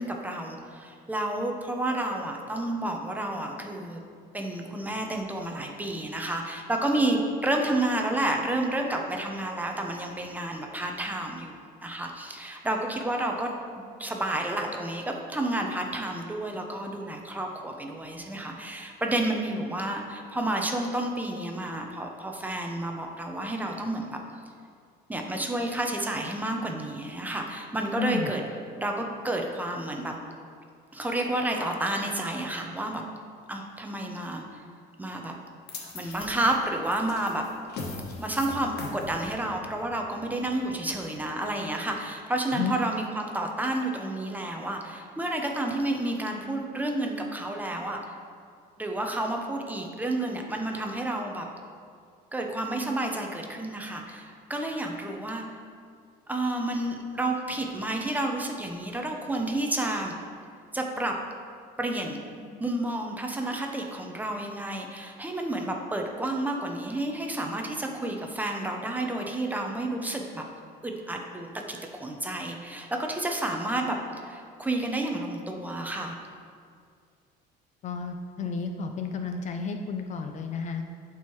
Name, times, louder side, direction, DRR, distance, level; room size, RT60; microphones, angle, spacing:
voice 1, 0.0-4.0 4.3-24.2 25.1-28.4 28.8-30.1 30.9-33.0 33.5-34.6 35.0-35.3 35.9-37.4 38.2-48.0 48.8-51.5 52.3-55.5 56.3-60.2 60.7-61.1 61.8-70.4 70.8-74.0 74.2-76.2, right 1 dB, 10° right, 2 dB, 0.6 m, -30 dB
voice 2, 28.0-28.3 42.5-42.7 77.8-80.9, left 5 dB, 40° left, 6 dB, 0.4 m, -32 dB
sound 1, 35.7-42.0, left 4 dB, 65° left, 1.0 m, -42 dB
10.5 x 4.5 x 3.1 m, 2.2 s
cardioid pair, 155°, 18 cm